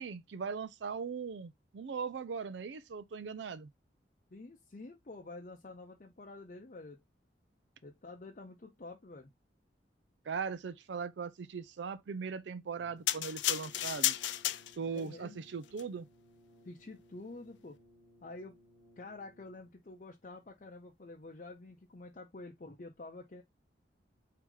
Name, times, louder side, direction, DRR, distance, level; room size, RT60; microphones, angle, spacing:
voice 1, 0.0-3.7 10.3-14.2 14.8-16.1, right 5 dB, 80° right, 0.4 m, -39 dB
voice 2, 4.3-7.0 7.8-9.3 14.9-15.4 16.6-17.8 18.2-18.6 19.0-23.4, left 2 dB, 45° left, 0.7 m, -48 dB
Brass instrument, 12.7-19.9, equal, 20° right, 1.6 m, -62 dB
sound 1, 13.1-15.0 15.7-15.8, left 13 dB, 90° left, 0.4 m, -33 dB
4.7 x 2.8 x 3.6 m
head